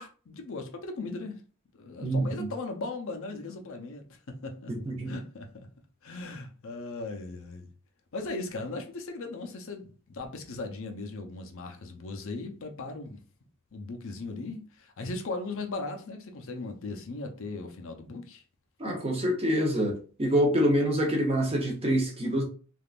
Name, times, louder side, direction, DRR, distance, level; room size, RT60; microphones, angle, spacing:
voice 1, 0.0-1.4 1.7-4.7 5.1-5.7 6.0-7.7 8.1-13.2 13.7-18.4, left 3 dB, 65° left, 0.6 m, -38 dB
voice 2, 2.0-2.5 4.7-5.1 18.8-22.4, equal, 25° right, 0.7 m, -26 dB
3.5 x 2.4 x 2.4 m
head